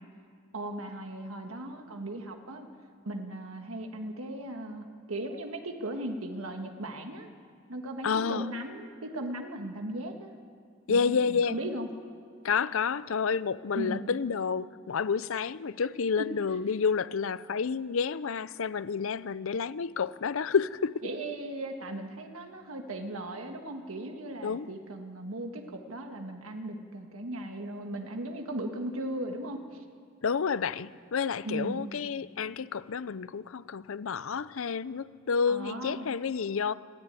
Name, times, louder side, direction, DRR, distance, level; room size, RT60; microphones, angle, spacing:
voice 1, 0.5-2.7 3.0-7.3 7.7-10.4 10.9-11.9 13.7-14.1 16.2-16.3 21.0-29.8 31.4-31.9 35.5-36.1, right 1 dB, 85° right, 1.6 m, -37 dB
voice 2, 8.0-8.5 10.9-11.6 12.4-21.0 24.4-24.7 30.2-36.7, left 6 dB, 70° left, 0.5 m, -29 dB
21.5 x 14.5 x 9.0 m
head